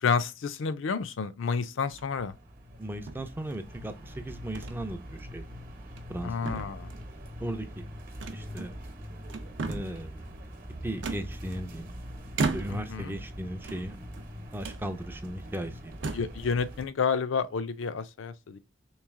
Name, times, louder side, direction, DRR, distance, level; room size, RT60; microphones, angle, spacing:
voice 1, 0.0-2.3 6.2-6.9 12.7-13.1 16.1-18.6, left 5 dB, 75° left, 0.4 m, -30 dB
sound 1, 1.8-2.3 3.1-3.8 4.5-4.8 5.2-5.3 5.8-6.2 6.4-7.2 8.2-8.9 9.3-10.0 11.0-11.8 12.3-13.0 13.5-14.2 14.6-14.8 15.4-15.5 15.9-16.4, right 4 dB, 65° right, 0.5 m, -35 dB
sound 2, 2.1-16.9, equal, 45° right, 0.9 m, -43 dB
voice 2, 2.8-5.6 6.1-6.7 7.4-7.9 8.3-8.7 9.7-10.2 10.8-11.9 12.5-14.0 14.5-16.1, right 1 dB, 10° right, 0.4 m, -37 dB
3.2 x 3.1 x 3.5 m
head